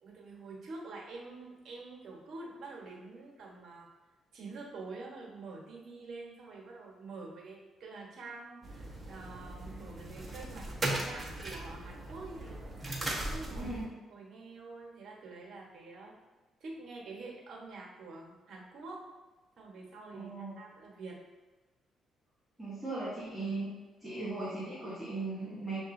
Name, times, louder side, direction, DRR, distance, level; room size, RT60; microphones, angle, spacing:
voice 1, 0.0-3.9 4.3-12.5 13.0-13.8 14.1-16.1 16.6-19.1 19.6-21.2, right 3 dB, 60° right, -2 dB, 1.2 m, -47 dB
sound 1, 8.6-13.8, right 1 dB, 20° right, 0.9 m, -38 dB
voice 2, 20.1-20.6 22.6-23.7 24.0-25.8, right 2 dB, ahead, -11 dB, 1.3 m, -38 dB
7.0 x 2.6 x 2.6 m, 1.2 s
cardioid pair, 90°, 0 cm